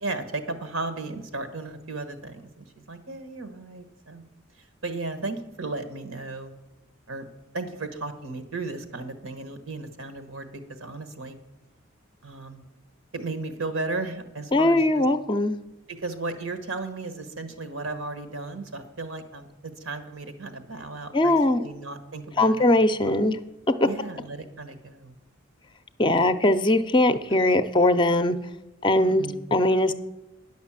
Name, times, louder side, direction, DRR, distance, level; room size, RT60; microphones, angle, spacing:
voice 1, 0.0-4.2 4.8-6.5 7.1-7.3 7.5-11.4 12.2-12.6 13.1-15.0 16.0-22.7 23.8-25.2 29.0-29.4, right 3 dB, 90° right, 9 dB, 1.3 m, -35 dB
voice 2, 14.5-15.6 21.1-21.6 22.4-23.4 26.0-28.4 28.8-29.3 29.5-29.9, left 1 dB, 25° left, 10 dB, 0.5 m, -20 dB
10.0 x 6.2 x 7.3 m, 1.0 s
head